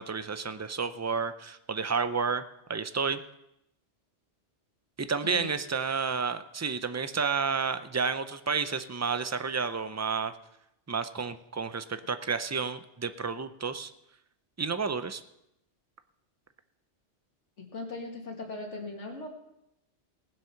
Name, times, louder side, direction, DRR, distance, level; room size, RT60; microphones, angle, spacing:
voice 1, 0.0-2.4 2.7-3.2 5.0-10.3 10.9-13.9 14.6-15.2, right 5 dB, 25° right, 10 dB, 0.3 m, -31 dB
voice 2, 17.6-19.3, left 2 dB, 85° left, 1 dB, 2.3 m, -39 dB
18.5 x 7.6 x 5.7 m, 0.84 s
omnidirectional pair, 1.2 m